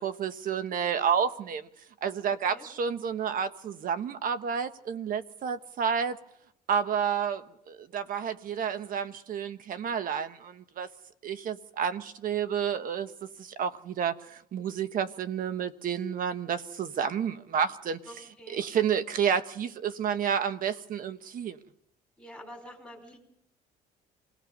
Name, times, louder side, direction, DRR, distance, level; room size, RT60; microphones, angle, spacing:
voice 1, 0.0-1.7 2.0-6.2 6.7-10.9 11.2-13.1 13.4-18.0 18.5-21.6, right 7 dB, 55° right, 10 dB, 1.4 m, -30 dB
voice 2, 18.1-18.6 22.2-23.2, equal, ahead, 0 dB, 4.7 m, -47 dB
26.5 x 18.5 x 5.4 m, 0.75 s
cardioid pair, 110°, 17 cm